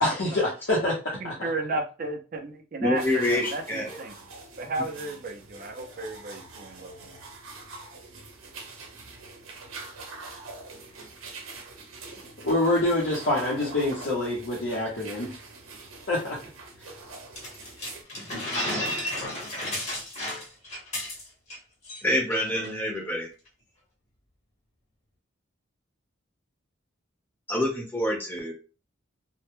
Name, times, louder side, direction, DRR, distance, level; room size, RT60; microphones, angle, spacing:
voice 1, 0.0-1.5 12.4-15.4 16.1-16.4, left 1 dB, 60° left, -6 dB, 0.6 m, -26 dB
voice 2, 1.2-4.1 4.6-7.2 22.6-23.2, right 2 dB, 45° right, 5 dB, 0.4 m, -34 dB
voice 3, 2.8-4.0 18.5-18.6 22.0-23.3 27.5-28.5, left 1 dB, 10° left, -2 dB, 0.7 m, -27 dB
sound 1, 2.9-18.0, right 3 dB, 85° right, 0.6 m, -44 dB
sound 2, 17.4-21.6 21.8-22.0 22.3-22.7, left 1 dB, 35° left, 0.9 m, -32 dB
2.1 x 2.1 x 3.0 m, 0.34 s
head